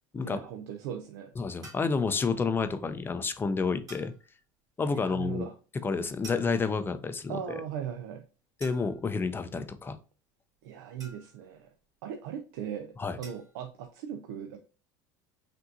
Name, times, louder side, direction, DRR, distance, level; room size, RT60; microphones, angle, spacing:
voice 1, 0.2-1.3 4.8-5.5 7.3-8.2 10.6-11.7 12.0-14.6, right 8 dB, 80° right, 6 dB, 0.5 m, -39 dB
voice 2, 1.4-4.1 4.8-5.5 5.8-7.6 8.6-10.0 13.0-13.2, left 4 dB, 20° left, 10 dB, 0.5 m, -30 dB
sound 1, 1.6-2.0 3.9-4.2 6.2-6.8 8.6-9.1 11.0-11.5 13.2-13.6, right 3 dB, 30° right, 1.7 m, -50 dB
5.7 x 2.6 x 2.6 m, 0.36 s
supercardioid pair, 110°, 11 cm